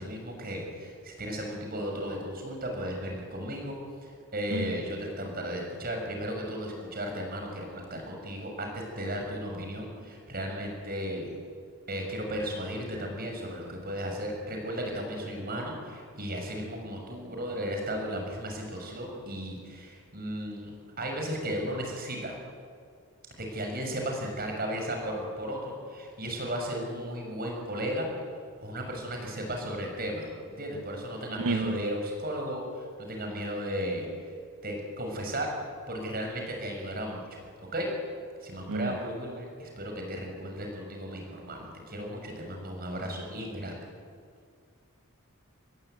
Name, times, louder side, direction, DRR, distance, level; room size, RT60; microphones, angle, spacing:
voice 1, 0.0-11.3 11.9-22.4 23.4-28.1 28.6-34.1 34.6-35.5 35.9-37.4 37.7-37.9 38.4-43.8, equal, 40° right, 2 dB, 6.8 m, -35 dB
voice 2, 31.4-31.8 38.7-38.9, right 2 dB, 85° right, 10 dB, 0.8 m, -29 dB
26.0 x 21.0 x 9.3 m, 2.1 s
head